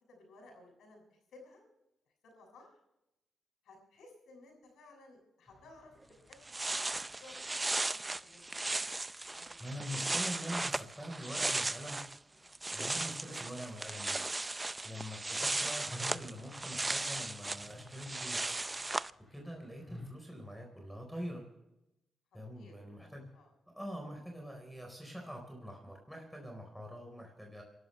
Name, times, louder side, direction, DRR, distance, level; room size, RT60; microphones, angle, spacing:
voice 1, 0.1-1.6 2.2-2.7 3.6-6.6 6.9-8.7 9.3-9.6 12.3-12.5 22.6-23.5, left 2 dB, 80° left, 3 dB, 6.9 m, -58 dB
sound 1, 5.5-9.3 9.5-9.6 9.8-9.9 14.9-20.1, equal, 20° left, 5.4 m, -54 dB
sound 2, 6.0-6.1 6.3-12.2 12.5-19.1, right 2 dB, 20° right, 0.5 m, -36 dB
voice 2, 9.6-12.0 12.7-14.2 14.8-18.4 19.3-21.4 22.3-23.2 23.7-27.6, equal, ahead, 2 dB, 4.3 m, -44 dB
28.0 x 12.5 x 3.3 m, 0.89 s
cardioid pair, 75°, 0 cm